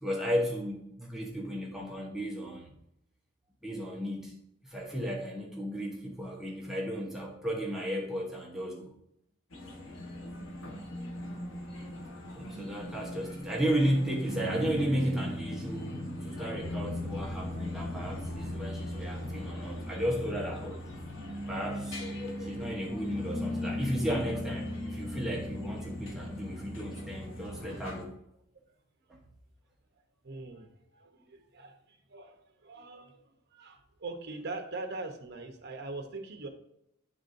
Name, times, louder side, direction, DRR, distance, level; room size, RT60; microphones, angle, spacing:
voice 1, 0.0-2.7 3.6-4.3 4.6-8.9 12.3-20.8 21.5-22.0 22.4-28.1 29.1-29.2, equal, ahead, -3 dB, 0.9 m, -34 dB
sound 1, 9.5-28.0, left 1 dB, 90° left, 1.2 m, -38 dB
voice 2, 30.2-36.5, right 3 dB, 55° right, 4 dB, 0.9 m, -42 dB
11.0 x 3.7 x 2.6 m, 0.78 s
head